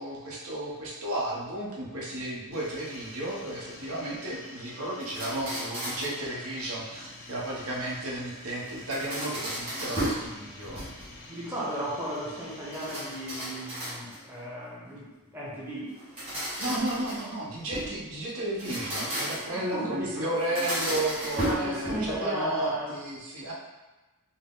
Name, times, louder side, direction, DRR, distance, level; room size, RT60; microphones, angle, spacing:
voice 1, 0.0-10.8 16.6-23.5, right 1 dB, 75° right, -5 dB, 0.9 m, -33 dB
sound 1, 2.5-13.9, left 2 dB, 70° left, 0.7 m, -48 dB
sound 2, 5.0-6.2 8.6-10.3 10.6-11.2 12.7-14.3 15.9-18.0 18.5-19.6 20.4-22.2, right 1 dB, 25° right, 1.4 m, -34 dB
voice 2, 11.3-16.0 19.5-20.4 21.4-22.9, right 1 dB, 10° right, -7 dB, 0.7 m, -35 dB
4.3 x 2.0 x 3.7 m, 1.1 s
head